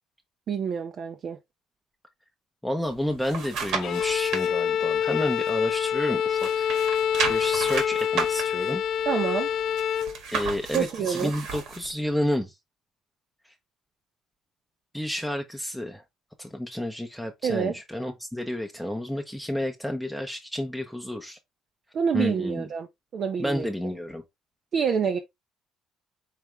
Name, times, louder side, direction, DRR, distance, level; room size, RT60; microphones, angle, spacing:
voice 1, 0.5-1.4 9.1-9.5 10.7-11.3 17.4-17.8 21.9-22.9 23.1-23.7 24.7-25.2, right 7 dB, 50° right, 0.6 m, -27 dB
voice 2, 2.6-6.7 7.3-8.8 10.3-12.5 14.9-16.0 16.4-21.4 22.1-22.6 23.4-24.2, left 1 dB, ahead, 0.7 m, -30 dB
sound 1, 2.9-4.5 5.0-6.1 6.3-11.9 12.3-12.4, right 5 dB, 70° right, 1.6 m, -33 dB
Bowed string instrument, 3.8-10.2, left 8 dB, 55° left, 0.4 m, -26 dB
4.9 x 3.4 x 3.2 m
cardioid pair, 120°, 0 cm